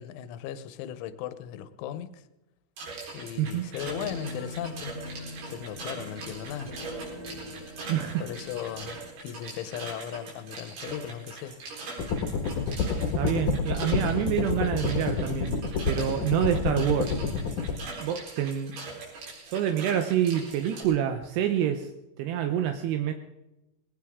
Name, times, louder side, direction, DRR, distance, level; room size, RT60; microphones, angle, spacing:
voice 1, 0.0-2.2 3.1-5.0 5.5-6.7 8.2-11.6, left 10 dB, 80° left, 12 dB, 3.2 m, -37 dB
sound 1, 2.8-20.8, right 3 dB, 55° right, 6.0 m, -42 dB
sound 2, 3.7-9.1, left 1 dB, 15° right, 3.4 m, -42 dB
voice 2, 7.9-8.2 13.2-17.2 18.0-18.7 19.5-21.9 22.2-23.1, right 10 dB, 80° right, 6 dB, 2.4 m, -27 dB
sound 3, 12.0-17.7, left 5 dB, 60° left, 2.3 m, -28 dB
21.0 x 18.0 x 3.7 m, 0.96 s
omnidirectional pair, 5.8 m